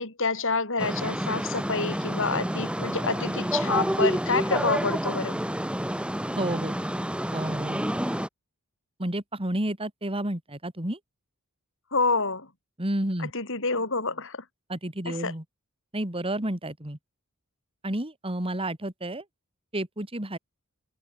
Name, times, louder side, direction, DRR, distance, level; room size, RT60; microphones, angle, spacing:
voice 1, 0.0-5.4 11.9-12.5 13.2-14.4 15.1-15.3, left 4 dB, 60° left, 7.4 m, -28 dB
sound 1, 0.8-8.3, equal, 5° right, 4.5 m, -29 dB
voice 2, 6.4-6.7 7.3-7.8 9.0-11.0 12.8-13.3 14.7-15.4 15.9-17.0 17.8-19.2 19.7-20.4, right 1 dB, 25° right, 3.2 m, -30 dB
head